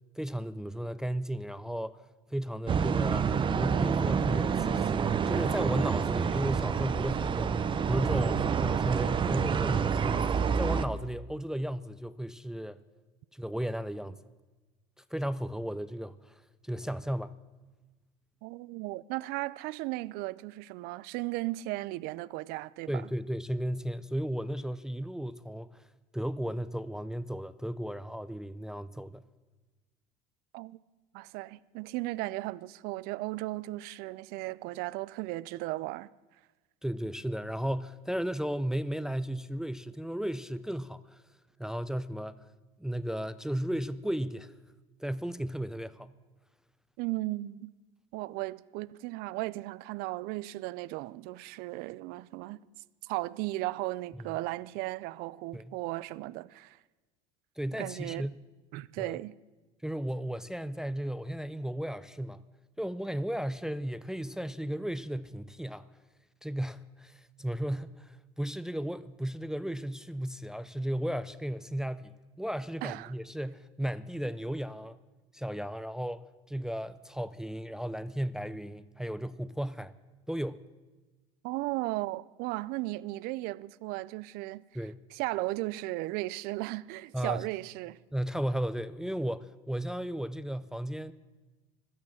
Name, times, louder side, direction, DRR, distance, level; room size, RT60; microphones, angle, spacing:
voice 1, 0.2-2.0 2.3-7.6 7.8-10.3 10.6-12.8 13.3-14.2 15.1-17.3 22.9-25.9 26.1-29.2 36.8-41.2 41.6-42.4 42.8-44.5 45.0-46.1 55.5-55.7 57.6-58.3 59.0-59.2 59.8-62.5 62.8-65.9 66.4-75.0 75.3-80.0 80.3-80.7 84.7-85.0 87.1-87.4 88.1-91.1, right 1 dB, 5° right, 0.5 m, -35 dB
sound 1, 2.7-10.9, right 6 dB, 30° right, 0.9 m, -28 dB
voice 2, 18.4-23.1 30.5-30.8 31.1-36.1 47.0-47.7 48.1-52.6 53.0-56.8 57.8-58.3 58.7-59.4 72.8-73.1 81.4-84.6 85.1-88.0, right 19 dB, 65° right, 0.5 m, -36 dB
16.0 x 12.5 x 7.3 m
supercardioid pair, 105°, 17 cm